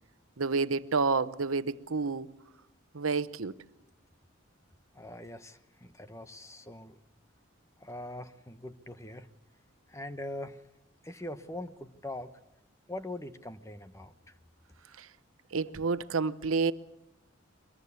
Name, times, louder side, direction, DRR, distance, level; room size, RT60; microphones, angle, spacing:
voice 1, 0.4-2.3 2.9-3.5 15.0-15.1 15.5-16.7, right 4 dB, 90° right, 0.9 m, -29 dB
voice 2, 4.9-7.0 7.8-9.3 9.9-10.6 11.0-12.4 12.9-14.3, left 1 dB, 15° left, 1.0 m, -42 dB
24.0 x 22.5 x 8.3 m
head